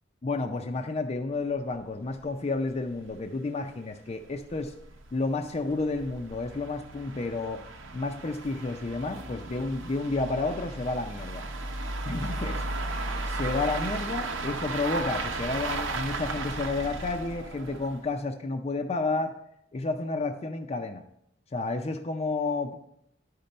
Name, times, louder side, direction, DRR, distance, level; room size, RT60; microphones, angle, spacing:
voice 1, 0.2-4.7 5.1-7.6 7.9-11.4 12.0-12.6 13.2-19.3 19.7-21.0 21.5-22.8, left 3 dB, 30° left, 4 dB, 0.5 m, -31 dB
sound 1, 1.7-1.8 2.1-2.2 2.6-2.7 3.1-3.2 3.8-18.2, right 2 dB, 75° right, 0.8 m, -35 dB
11.0 x 5.2 x 4.3 m, 0.74 s
head